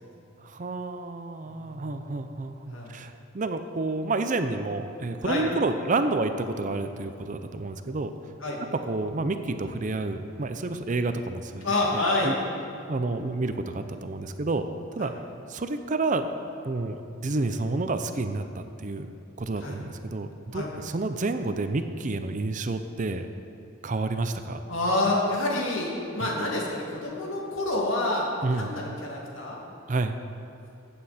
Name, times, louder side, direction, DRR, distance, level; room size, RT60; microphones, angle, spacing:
voice 1, 0.4-8.1 8.7-11.7 11.9-12.3 12.9-14.7 15.0-15.1 15.5-16.3 16.6-19.1 19.4-23.3 23.8-24.6 28.4-28.7 29.9-30.2, right 3 dB, 40° right, 8 dB, 0.6 m, -29 dB
voice 2, 1.4-1.9 2.7-2.9 5.2-5.4 8.4-8.6 11.6-12.3 15.0-15.1 19.6-19.8 20.5-20.7 24.7-29.6, left 2 dB, 80° left, -3 dB, 2.4 m, -28 dB
15.0 x 8.6 x 4.3 m, 2.7 s
head